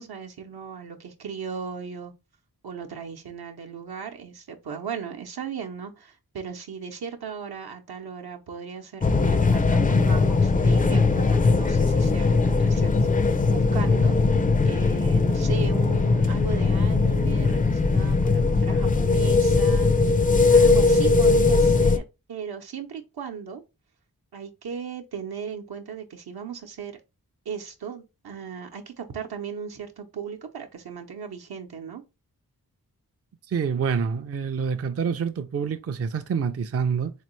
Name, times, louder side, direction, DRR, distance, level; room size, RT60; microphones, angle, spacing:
voice 1, 0.0-2.1 2.6-9.6 9.9-14.2 14.6-20.2 20.5-23.6 24.3-26.9 27.5-32.0, right 7 dB, 75° right, 0.8 m, -37 dB
sound 1, 9.0-22.0, left 3 dB, 25° left, 0.4 m, -20 dB
voice 2, 33.5-37.1, right 6 dB, 40° right, 0.4 m, -27 dB
3.6 x 3.2 x 3.1 m
cardioid pair, 50°, 38 cm